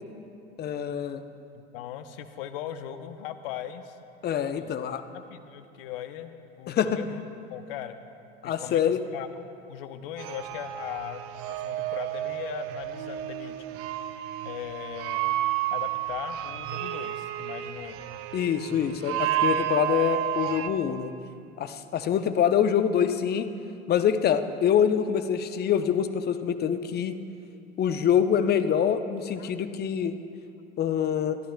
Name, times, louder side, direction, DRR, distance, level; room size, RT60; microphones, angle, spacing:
voice 1, 0.6-1.2 4.2-5.0 6.7-7.0 8.4-9.0 18.3-21.1 21.6-23.5 23.9-27.2 27.8-30.2 30.8-31.4, left 8 dB, 30° left, 10 dB, 0.7 m, -25 dB
voice 2, 1.5-4.0 4.6-4.7 5.3-7.2 7.5-8.0 8.4-8.8 9.1-13.8 14.4-15.4 15.7-18.0 29.4-29.5, left 10 dB, 60° left, 10 dB, 0.8 m, -39 dB
sound 1, 10.2-20.7, right 12 dB, 45° right, 0.7 m, -31 dB
22.0 x 13.5 x 2.3 m, 2.6 s
figure-of-eight pair, 75°, 32 cm